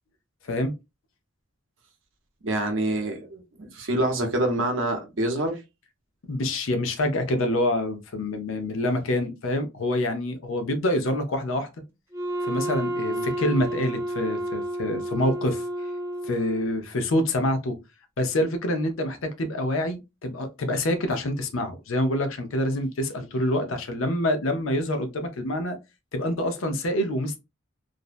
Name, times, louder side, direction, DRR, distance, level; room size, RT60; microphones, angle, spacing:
voice 1, 2.4-5.6 13.0-13.2, right 1 dB, 70° right, 0.7 m, -26 dB
voice 2, 6.3-11.7 12.5-15.6 16.2-17.8 18.2-25.8 26.1-27.4, left 1 dB, 80° left, 0.6 m, -26 dB
Wind instrument woodwind instrument, 12.1-16.9, right 1 dB, 10° right, 0.4 m, -31 dB
2.5 x 2.1 x 2.4 m
head